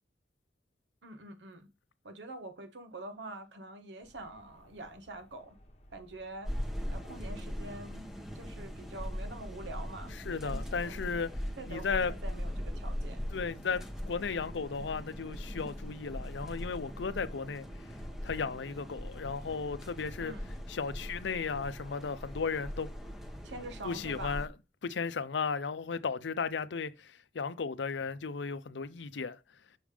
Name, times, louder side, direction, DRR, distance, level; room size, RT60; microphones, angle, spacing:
voice 1, 1.0-1.7 2.0-5.6 5.9-6.6 6.9-8.1 8.3-10.1 10.4-11.2 11.6-13.2 20.2-20.4 23.4-24.4, right 2 dB, 85° right, 1.1 m, -45 dB
sound 1, 4.0-22.5, left 1 dB, 40° left, 1.1 m, -61 dB
sound 2, 6.4-24.5, equal, 5° right, 0.9 m, -40 dB
voice 2, 10.2-11.3 11.7-12.1 13.3-17.6 18.2-20.3 20.7-22.9 23.8-24.5 24.8-29.4, left 5 dB, 85° left, 0.6 m, -35 dB
6.3 x 3.4 x 4.9 m
head